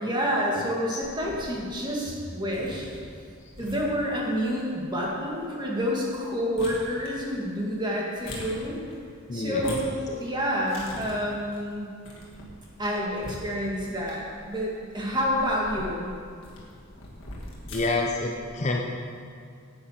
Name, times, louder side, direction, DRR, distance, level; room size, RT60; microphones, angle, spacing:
voice 1, 0.0-2.9 3.6-8.8 9.3-12.0 12.8-16.1, equal, 20° right, -3 dB, 1.8 m, -28 dB
voice 2, 0.6-1.0 9.3-9.8 17.6-18.8, left 2 dB, 30° left, 1 dB, 0.6 m, -28 dB
sound 1, 1.0-18.2, left 1 dB, 55° left, 2.3 m, -44 dB
9.5 x 8.9 x 5.8 m, 2.3 s
head